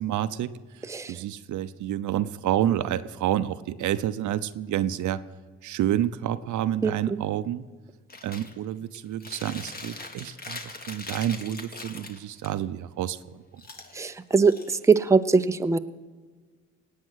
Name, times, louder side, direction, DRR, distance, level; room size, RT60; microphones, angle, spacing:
voice 1, 0.0-5.2 5.6-7.6 8.2-13.6, right 11 dB, 75° right, 12 dB, 0.7 m, -29 dB
Chewing mastication, 8.1-8.5 8.9-12.5 13.6-15.1, left 2 dB, 30° left, 1.9 m, -41 dB
voice 2, 13.9-15.8, right 4 dB, 10° right, 9 dB, 0.6 m, -21 dB
18.5 x 8.6 x 6.4 m, 1.4 s
cardioid pair, 90°, 30 cm